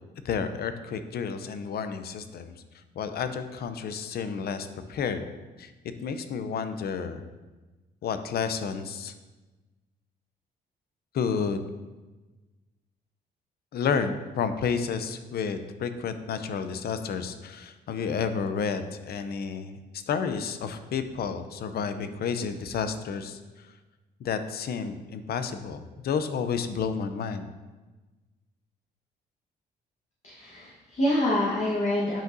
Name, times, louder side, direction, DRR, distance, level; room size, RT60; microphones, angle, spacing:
voice 1, 0.2-2.5 3.0-5.2 5.6-5.7 6.0-7.2 8.0-9.1 11.1-11.7 13.7-23.4 24.2-27.5, left 6 dB, 60° left, 9 dB, 0.5 m, -31 dB
voice 2, 30.2-32.2, left 1 dB, 40° left, -5 dB, 1.2 m, -26 dB
8.7 x 5.3 x 2.6 m, 1.2 s
cardioid pair, 95°, 18 cm